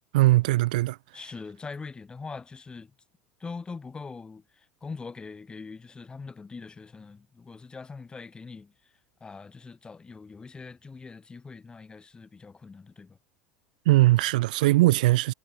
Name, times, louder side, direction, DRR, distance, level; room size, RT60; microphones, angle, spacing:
voice 1, 0.1-1.0 13.9-15.3, right 18 dB, 65° right, 0.7 m, -20 dB
voice 2, 1.1-2.9 3.4-8.7 9.2-13.2, left 4 dB, 20° left, 4.1 m, -42 dB
figure-of-eight pair, 75°, 5 cm